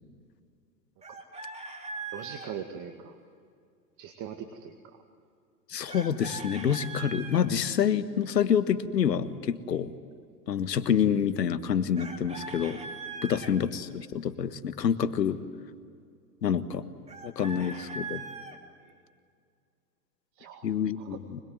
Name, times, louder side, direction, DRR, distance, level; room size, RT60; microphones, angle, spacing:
Chicken rooster, 1.0-2.5 5.9-7.4 12.0-13.5 17.1-18.6, right 3 dB, 15° right, 2.9 m, -40 dB
voice 1, 2.1-3.2 4.0-4.7 18.8-18.9 20.4-21.2, right 8 dB, 40° right, 6 dB, 2.1 m, -41 dB
voice 2, 5.7-9.9 10.5-12.8 13.2-15.4 16.4-16.8 17.2-18.2 20.6-21.4, left 8 dB, 85° left, 12 dB, 1.6 m, -27 dB
25.5 x 21.5 x 9.2 m, 2.2 s
hypercardioid pair, 110°, 48 cm